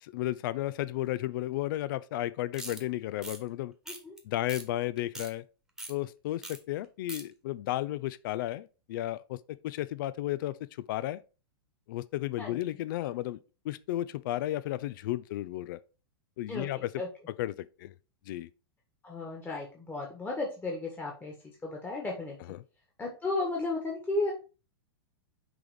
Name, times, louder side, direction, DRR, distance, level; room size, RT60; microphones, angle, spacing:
voice 1, 0.0-3.7 4.2-5.4 5.9-11.2 11.9-13.4 13.6-15.8 16.4-16.9 17.4-17.9 18.3-18.5 22.5-22.6, left 15 dB, 55° left, 0.4 m, -33 dB
sound 1, 2.5-2.8 3.2-3.4 3.9-4.2 4.5-4.6 5.0-5.3 5.8-5.9 6.4-6.6 6.8-7.2, right 1 dB, 5° right, 1.3 m, -41 dB
voice 2, 19.0-21.3 21.6-22.4 23.0-24.3, left 2 dB, 15° left, 1.5 m, -34 dB
6.0 x 3.5 x 4.8 m
hypercardioid pair, 105°, 13 cm